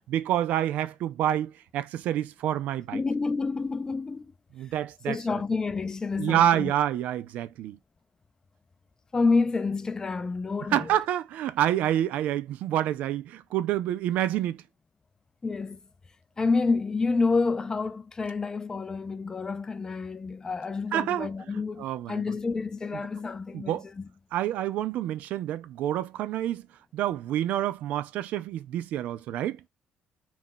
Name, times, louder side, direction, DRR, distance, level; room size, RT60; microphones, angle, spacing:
voice 1, 0.1-3.0 4.5-5.4 6.2-7.8 10.7-14.6 20.9-21.3 21.8-22.2 23.5-23.8 24.3-26.6 26.9-29.6, right 11 dB, 75° right, 0.3 m, -28 dB
voice 2, 2.9-4.3 5.1-6.7 9.1-10.9 15.4-15.8 16.4-24.1, left 4 dB, 25° left, 0.3 m, -28 dB
2.3 x 2.1 x 3.8 m
supercardioid pair, 80°, 3 cm